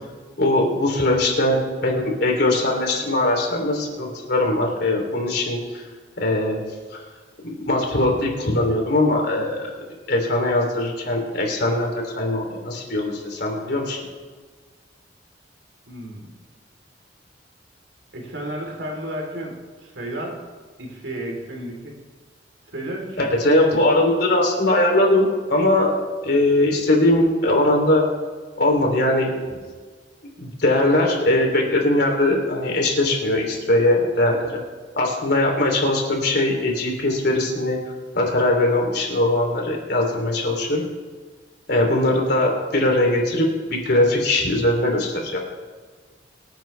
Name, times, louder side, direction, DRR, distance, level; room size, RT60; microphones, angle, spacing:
voice 1, 0.4-5.8 6.2-6.6 6.9-7.0 7.4-9.7 10.1-14.0 23.2-25.9 26.2-28.0 28.6-29.3 30.4-34.6 35.0-37.8 38.1-40.8 41.7-45.4, left 1 dB, 60° left, 1 dB, 3.2 m, -20 dB
voice 2, 15.9-16.3 18.1-20.4 20.8-21.9 22.7-23.4, right 1 dB, 90° right, -1 dB, 3.8 m, -32 dB
24.5 x 9.1 x 3.4 m, 1.5 s
head